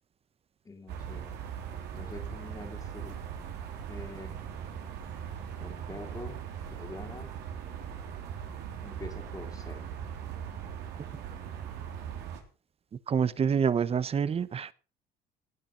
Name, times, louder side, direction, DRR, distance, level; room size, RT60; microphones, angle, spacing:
voice 1, 0.6-1.3 1.9-3.2 3.9-4.4 5.6-6.4 6.8-7.4 8.8-9.9, left 2 dB, 20° left, 1 dB, 2.6 m, -45 dB
sound 1, 0.9-12.4, right 8 dB, 85° right, 3.9 m, -40 dB
voice 2, 13.1-14.7, right 7 dB, 35° right, 17 dB, 1.0 m, -27 dB
18.5 x 8.6 x 5.8 m, 0.35 s
cardioid pair, 110°, 17 cm